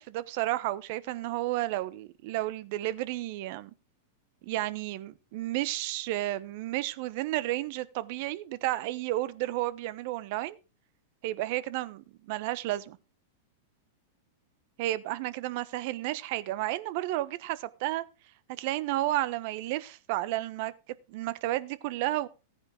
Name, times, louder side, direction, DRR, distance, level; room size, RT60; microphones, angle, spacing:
voice 1, 0.0-3.7 4.4-10.6 11.2-13.0 14.8-18.0 18.5-20.7 21.1-22.3, right 16 dB, 55° right, 1.0 m, -32 dB
15.0 x 9.5 x 3.7 m
hypercardioid pair, 115°, 0 cm